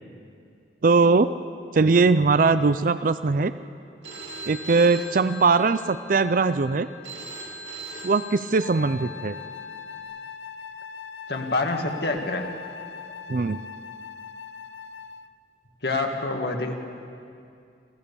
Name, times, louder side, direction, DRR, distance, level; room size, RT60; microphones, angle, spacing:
voice 1, 0.8-1.3 1.7-3.5 4.5-6.9 8.0-9.4 13.3-13.6, right 4 dB, 50° right, 13 dB, 0.4 m, -20 dB
Telephone, 4.0-10.0, right 1 dB, 85° right, 3.8 m, -41 dB
Wind instrument woodwind instrument, 8.6-15.4, left 6 dB, 80° left, 0.6 m, -40 dB
voice 2, 11.3-12.5 15.8-16.8, left 2 dB, 65° left, 3 dB, 2.1 m, -26 dB
27.0 x 16.0 x 7.0 m, 2.4 s
head